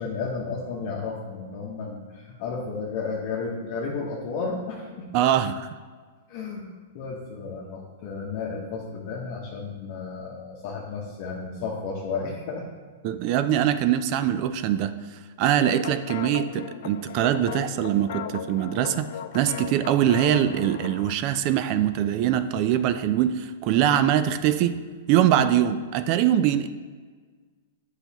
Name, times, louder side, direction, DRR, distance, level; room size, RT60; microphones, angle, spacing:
voice 1, 0.0-5.1 6.3-6.7 6.9-12.6 19.6-19.7 23.7-23.9, left 4 dB, 45° left, -2 dB, 1.0 m, -33 dB
voice 2, 5.1-5.7 13.0-19.1 19.3-24.8 25.1-26.7, right 10 dB, 40° right, 11 dB, 0.4 m, -23 dB
sound 1, 15.6-21.1, left 9 dB, 65° left, 0.3 m, -37 dB
7.9 x 5.7 x 2.9 m, 1.5 s
hypercardioid pair, 155°, 0 cm